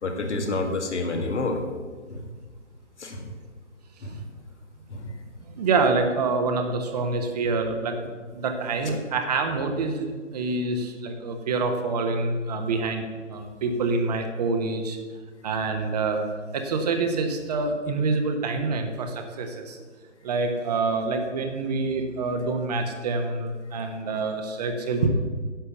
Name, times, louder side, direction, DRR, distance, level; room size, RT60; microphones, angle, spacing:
voice 1, 0.0-1.6 2.1-2.3 3.0-3.3 4.0-4.2 4.9-5.1 8.8-9.0, left 2 dB, 60° left, 4 dB, 2.0 m, -29 dB
voice 2, 5.5-8.0 8.3-15.0 15.4-16.2 16.5-19.8 20.2-25.1, right 3 dB, 30° right, 5 dB, 1.1 m, -26 dB
10.5 x 6.7 x 6.9 m, 1.4 s
figure-of-eight pair, 140°, 38 cm